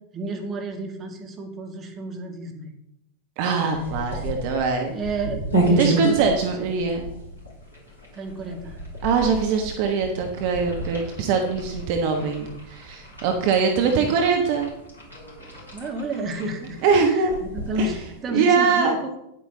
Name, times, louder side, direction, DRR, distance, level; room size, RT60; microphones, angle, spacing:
voice 1, 0.1-2.7 3.6-4.3 4.9-6.3 8.1-8.8 13.8-14.2 15.7-19.2, right 2 dB, 25° right, 2 dB, 1.8 m, -32 dB
voice 2, 3.4-4.9 5.8-7.1 9.0-14.7 16.8-17.4 17.8-17.9 18.3-19.0, right 5 dB, 45° right, 3 dB, 1.2 m, -22 dB
sound 1, 3.7-18.3, right 1 dB, 90° right, 3.9 m, -31 dB
10.0 x 8.6 x 4.0 m, 0.82 s
figure-of-eight pair, 90°, 0 cm